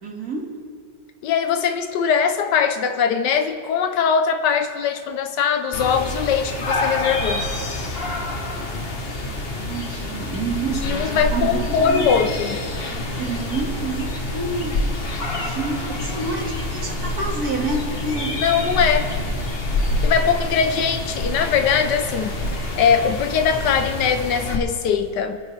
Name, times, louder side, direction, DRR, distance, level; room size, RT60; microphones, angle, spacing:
voice 1, 0.0-0.5 9.6-12.0 13.1-14.8 15.4-18.3, right 3 dB, 55° right, -1 dB, 2.4 m, -28 dB
voice 2, 1.2-7.5 10.8-12.6 18.4-19.1 20.0-22.4 22.8-25.4, left 7 dB, 70° left, 8 dB, 1.2 m, -21 dB
sound 1, 5.7-24.6, left 1 dB, 40° left, 1.1 m, -27 dB
27.5 x 9.3 x 3.3 m, 2.1 s
omnidirectional pair, 2.0 m